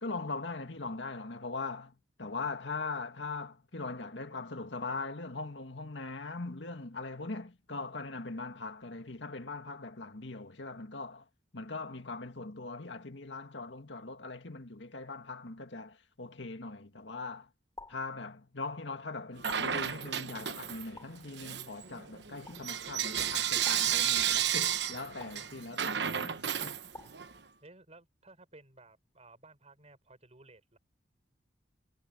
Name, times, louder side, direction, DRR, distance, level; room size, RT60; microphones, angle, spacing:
voice 1, 0.0-1.9 2.2-11.3 11.5-17.5 17.9-26.7, left 3 dB, 85° left, 2.0 m, -40 dB
sound 1, 17.8-18.2 19.5-19.9 21.0-21.3 22.5-22.8 23.7-24.1 25.2-25.6 26.9-27.3, left 3 dB, 20° left, 3.7 m, -51 dB
Bell / Coin (dropping), 19.4-20.9 21.3-27.3, right 9 dB, 70° right, 1.1 m, -32 dB
voice 2, 27.6-30.8, right 2 dB, 40° right, 6.3 m, -56 dB
head